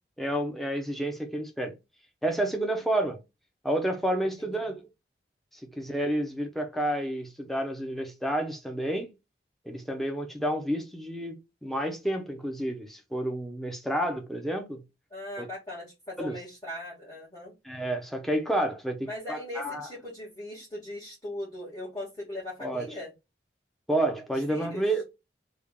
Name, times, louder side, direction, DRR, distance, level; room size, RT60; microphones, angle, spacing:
voice 1, 0.2-1.7 2.2-3.2 3.6-4.8 5.8-9.1 9.7-14.8 15.4-15.5 16.2-16.3 17.6-19.9 22.6-22.9 23.9-25.0, right 1 dB, ahead, 0.5 m, -30 dB
voice 2, 15.1-17.5 19.0-23.1 24.3-24.8, left 1 dB, 20° left, 1.6 m, -39 dB
3.3 x 2.3 x 3.5 m
head